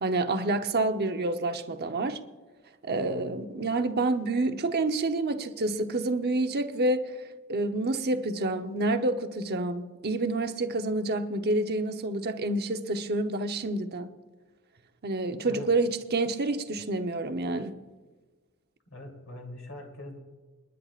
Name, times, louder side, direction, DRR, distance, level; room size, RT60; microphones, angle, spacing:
voice 1, 0.0-2.2 2.8-7.1 7.5-14.1 15.0-17.7, right 2 dB, 50° right, 0.9 m, -28 dB
voice 2, 18.9-20.2, left 1 dB, 65° left, 3.2 m, -42 dB
29.0 x 10.5 x 2.5 m
head